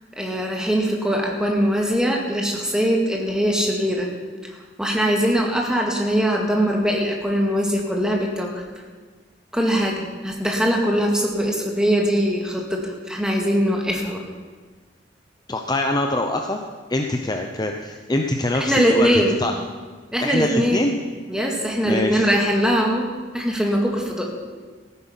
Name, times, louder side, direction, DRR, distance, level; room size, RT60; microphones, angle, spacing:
voice 1, 0.2-4.1 4.8-8.6 9.5-14.2 18.6-19.4 20.1-20.8 21.3-24.3, equal, 5° right, 0 dB, 2.1 m, -21 dB
voice 2, 15.5-16.6 16.9-19.5 20.2-21.0 21.8-22.3, left 1 dB, 25° left, 3 dB, 0.7 m, -24 dB
15.5 x 9.7 x 5.7 m, 1.4 s
head